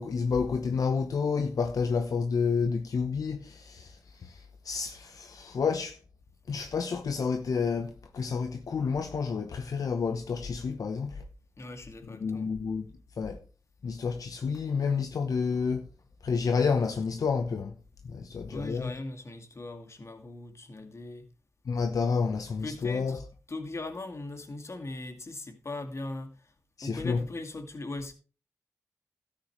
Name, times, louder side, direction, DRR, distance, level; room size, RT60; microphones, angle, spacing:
voice 1, 0.0-6.0 6.5-11.2 12.2-12.9 13.2-13.4 13.8-15.9 16.2-17.7 18.0-18.9 21.6-23.2 26.8-27.2, left 5 dB, 80° left, 1.0 m, -30 dB
voice 2, 11.6-12.5 18.5-21.3 22.6-23.2 23.5-26.5 26.8-28.1, left 2 dB, 50° left, 2.3 m, -39 dB
13.0 x 9.5 x 3.2 m
cardioid pair, 55°, 6 cm